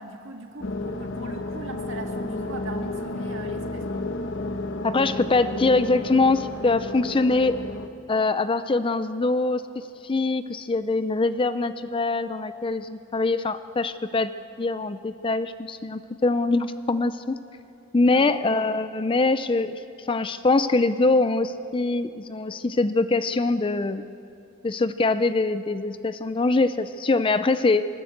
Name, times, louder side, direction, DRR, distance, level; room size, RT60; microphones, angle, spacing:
voice 1, 0.0-4.1 18.1-18.5, right 2 dB, 60° right, 3 dB, 1.9 m, -40 dB
sound 1, 0.6-7.9, left 2 dB, 55° left, 1.0 m, -32 dB
voice 2, 4.8-7.6 8.1-9.6 10.0-14.3 14.6-17.4 17.9-19.7 20.0-24.0 24.6-27.9, left 3 dB, 25° left, 12 dB, 0.4 m, -23 dB
21.5 x 19.0 x 8.0 m, 2.8 s
head